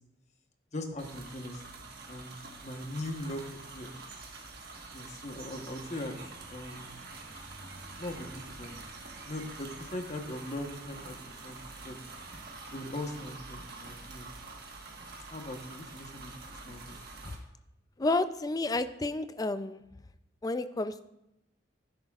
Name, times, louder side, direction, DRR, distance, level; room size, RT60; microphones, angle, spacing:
voice 1, 0.7-1.8 2.1-2.3 2.6-3.4 3.7-4.0 4.9-6.2 6.5-7.0 8.0-8.7 9.2-12.0 12.7-14.3 15.3-17.0, left 1 dB, 40° left, 4 dB, 1.1 m, -40 dB
sound 1, 1.0-17.4, right 3 dB, 55° right, 1.4 m, -46 dB
voice 2, 18.0-19.8 20.4-21.0, left 2 dB, 20° left, 12 dB, 0.4 m, -30 dB
12.0 x 10.5 x 2.4 m, 0.86 s
head